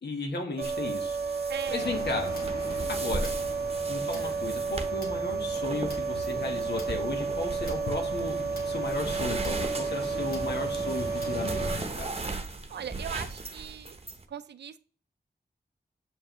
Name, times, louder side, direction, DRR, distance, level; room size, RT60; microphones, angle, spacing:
voice 1, 0.0-1.4 1.7-2.3 2.9-3.3 3.9-8.4 8.6-12.2, left 2 dB, 80° left, 2 dB, 1.4 m, -35 dB
sound 1, 0.6-14.2, right 3 dB, 35° right, 0.8 m, -38 dB
sound 2, 0.6-11.8, right 5 dB, 65° right, 0.8 m, -32 dB
voice 2, 1.5-2.0 4.1-4.4 12.7-14.0 14.3-14.8, right 8 dB, 85° right, 14 dB, 0.4 m, -39 dB
sound 3, 1.8-11.8, left 2 dB, 60° left, 1.7 m, -40 dB
7.6 x 4.8 x 3.0 m, 0.42 s
cardioid pair, 60°, 17 cm